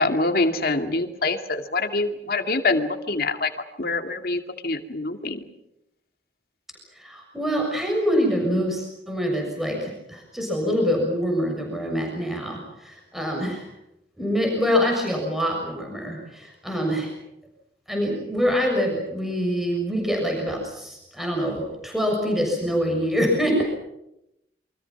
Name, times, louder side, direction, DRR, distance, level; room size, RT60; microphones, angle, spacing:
voice 1, 0.0-3.5 3.8-5.4, left 3 dB, 55° left, 6 dB, 2.4 m, -25 dB
voice 2, 6.9-13.7 14.2-17.1 17.9-23.6, equal, ahead, 0 dB, 6.7 m, -25 dB
28.5 x 24.5 x 6.0 m, 0.83 s
head